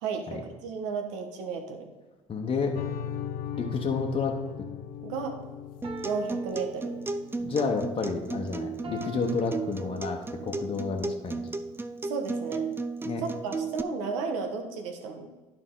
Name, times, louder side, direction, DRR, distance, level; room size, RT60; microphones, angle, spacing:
voice 1, 0.0-1.9 5.0-5.4 6.0-6.9 12.1-12.6 13.2-15.3, right 5 dB, 70° right, 5 dB, 1.3 m, -33 dB
voice 2, 2.3-2.8 3.5-4.4 7.4-11.5 13.0-13.2, left 4 dB, 35° left, 1 dB, 1.1 m, -30 dB
sound 1, 2.8-7.9, left 9 dB, 60° left, 0.6 m, -39 dB
sound 2, 3.5-4.8 5.8-7.5 8.8-10.6 11.2-11.3, right 1 dB, 30° right, 1.5 m, -45 dB
Acoustic guitar, 5.8-13.8, right 3 dB, 15° right, 0.5 m, -34 dB
11.0 x 4.9 x 3.8 m, 1.2 s
hypercardioid pair, 65°, 17 cm